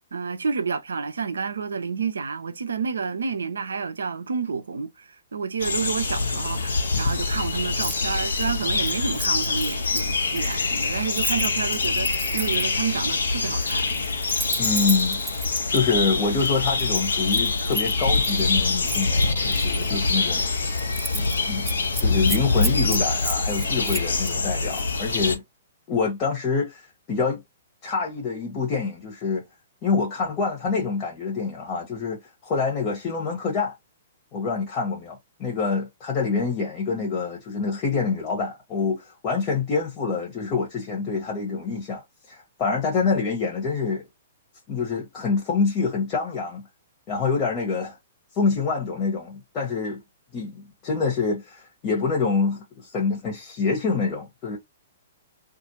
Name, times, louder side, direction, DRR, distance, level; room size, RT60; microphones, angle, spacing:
voice 1, 0.1-14.1, right 5 dB, 80° right, 0.4 m, -29 dB
sound 1, 5.6-25.4, left 3 dB, 80° left, 0.8 m, -25 dB
Keys jangling, 7.7-8.0 8.3-12.8 13.5-15.8 16.5-18.4 18.9-19.9 20.3-20.4 20.7-21.4 21.6-24.3 24.7-24.9, right 2 dB, 5° right, 0.4 m, -35 dB
voice 2, 14.6-15.2 15.7-20.8 21.1-21.7 22.0-25.4 25.9-27.4 27.8-29.4 29.8-33.7 34.3-42.0 42.3-44.0 44.7-46.7 47.1-48.0 48.3-50.0 50.3-54.6, left 4 dB, 35° left, 1.0 m, -26 dB
2.4 x 2.4 x 2.9 m
hypercardioid pair, 115°, 0 cm